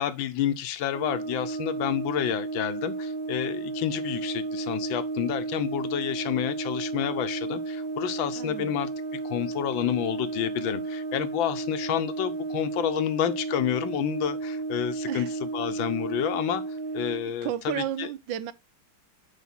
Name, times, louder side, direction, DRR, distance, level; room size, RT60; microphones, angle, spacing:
voice 1, 0.0-18.1, left 11 dB, 75° left, 1.6 m, -29 dB
Brass instrument, 0.9-17.3, right 3 dB, 40° right, 0.9 m, -33 dB
voice 2, 8.4-8.8 15.1-15.3 17.3-18.5, right 11 dB, 75° right, 1.3 m, -33 dB
8.3 x 4.9 x 4.4 m
omnidirectional pair, 2.2 m